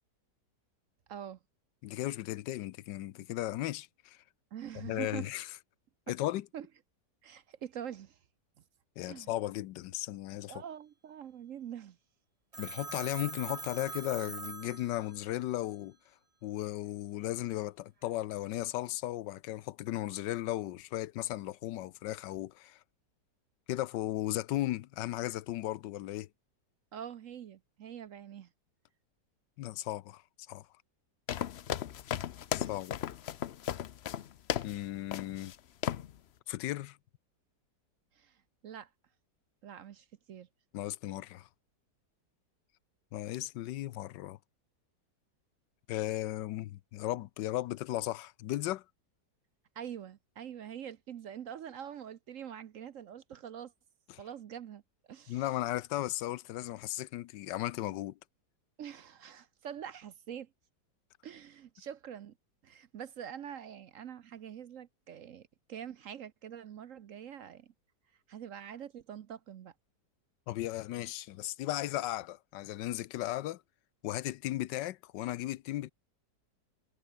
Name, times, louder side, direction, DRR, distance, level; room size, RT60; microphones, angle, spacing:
voice 1, 1.8-4.2 4.7-5.5 6.1-6.5 9.0-10.6 12.6-16.0 16.4-22.8 23.7-26.3 29.6-30.2 30.5-30.7 32.5-33.0 34.6-35.5 36.5-37.0 40.7-41.5 43.1-44.4 45.9-48.8 54.1-54.2 55.3-58.2 70.5-73.6 74.0-75.9, left 15 dB, 85° left, 1.3 m, -36 dB
voice 2, 4.5-5.3 6.5-6.7 7.2-8.2 9.0-9.3 10.5-12.0 12.6-12.7 26.9-28.5 32.5-32.7 38.1-38.9 39.6-40.5 49.7-53.7 54.2-54.8 55.1-55.5 58.8-60.5 61.2-62.3 62.6-67.7 68.3-69.7, right 9 dB, 60° right, 0.9 m, -45 dB
Telephone, 12.5-15.4, right 3 dB, 20° right, 1.3 m, -43 dB
sound 1, 31.3-34.8 35.1-35.5 35.8-36.1, left 10 dB, 65° left, 0.6 m, -35 dB
omnidirectional pair, 1.9 m